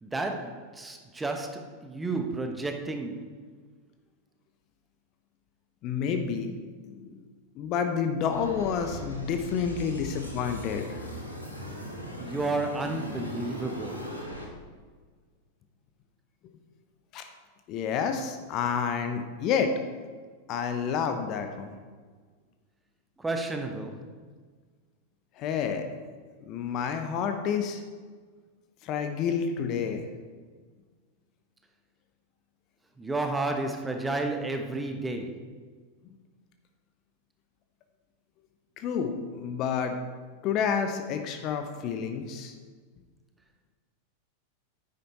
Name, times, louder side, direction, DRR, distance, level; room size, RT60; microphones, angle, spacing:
voice 1, 0.0-3.4 12.2-14.1 23.2-24.1 33.0-35.5, right 2 dB, 10° right, 5 dB, 1.1 m, -32 dB
voice 2, 5.8-6.6 6.9-7.2 7.5-11.1 17.1-17.3 17.7-19.7 20.5-21.8 25.4-25.8 26.5-27.8 28.8-30.1 38.8-40.0 40.4-42.6, left 7 dB, 40° left, 6 dB, 1.0 m, -29 dB
sound 1, 8.3-14.5, equal, 85° left, 1.8 m, -39 dB
9.9 x 9.2 x 4.2 m, 1.5 s
figure-of-eight pair, 90°, 0 cm